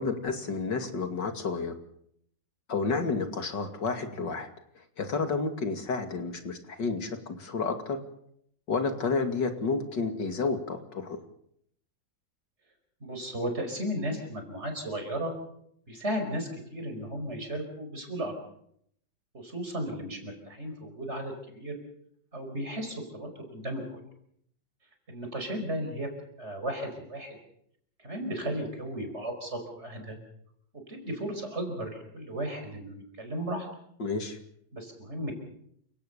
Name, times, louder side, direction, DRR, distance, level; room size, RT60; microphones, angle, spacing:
voice 1, 0.0-1.7 2.7-4.5 4.8-8.0 8.7-11.2 34.0-34.4, left 4 dB, 70° left, 6 dB, 3.1 m, -30 dB
voice 2, 13.0-15.3 15.9-18.4 19.3-21.8 22.3-23.8 25.1-26.1 26.4-27.4 28.0-30.2 30.9-33.7 34.7-35.3, right 1 dB, 35° right, 5 dB, 5.4 m, -35 dB
29.0 x 17.0 x 7.0 m, 0.71 s
omnidirectional pair, 2.0 m